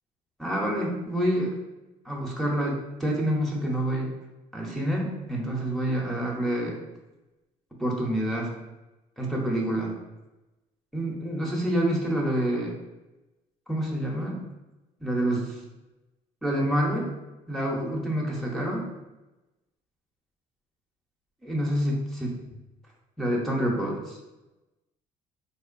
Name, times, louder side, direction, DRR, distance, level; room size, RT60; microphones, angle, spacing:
voice 1, 0.4-1.5 2.0-4.1 4.5-6.8 7.8-8.5 9.2-9.9 10.9-12.7 13.7-14.4 15.0-15.6 16.4-17.1 17.5-18.8 21.4-22.0 23.2-24.2, right 1 dB, ahead, -2 dB, 0.7 m, -27 dB
3.5 x 2.9 x 2.5 m, 1.0 s
supercardioid pair, 85°, 15 cm